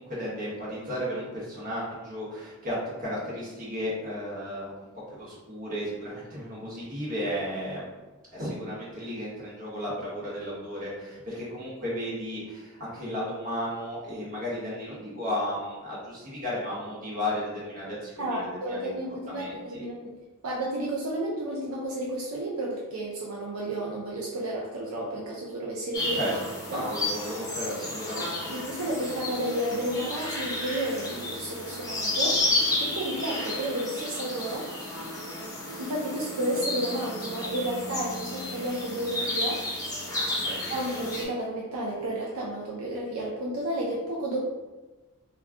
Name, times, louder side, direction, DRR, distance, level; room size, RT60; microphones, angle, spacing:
voice 1, 0.0-4.9 5.2-7.9 8.3-19.0 19.3-19.8 26.1-26.3 26.7-28.7 40.4-40.6, equal, 40° right, -7 dB, 1.1 m, -34 dB
voice 2, 18.2-26.3 26.7-26.8 28.5-32.5 32.8-34.7 35.8-39.6 40.7-44.4, right 1 dB, 75° right, -4 dB, 0.4 m, -32 dB
sound 1, 25.9-41.2, left 1 dB, 15° left, 0.6 m, -32 dB
2.3 x 2.2 x 3.5 m, 1.2 s
head